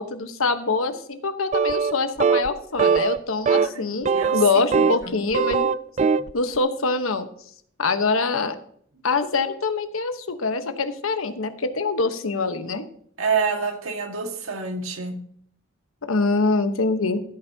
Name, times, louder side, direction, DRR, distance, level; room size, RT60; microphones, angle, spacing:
voice 1, 0.0-5.7 6.3-7.3 7.8-8.6 9.0-12.8 16.0-17.2, left 3 dB, 80° left, 9 dB, 1.1 m, -24 dB
sound 1, 1.5-2.0 2.2-2.5 2.8-3.2 3.5-3.7 4.1-5.0 5.3-6.3, right 5 dB, 35° right, 0.3 m, -20 dB
voice 2, 3.5-4.4 4.7-5.2 13.2-15.2, right 5 dB, 85° right, 4 dB, 1.8 m, -28 dB
15.5 x 9.0 x 2.8 m, 0.63 s
head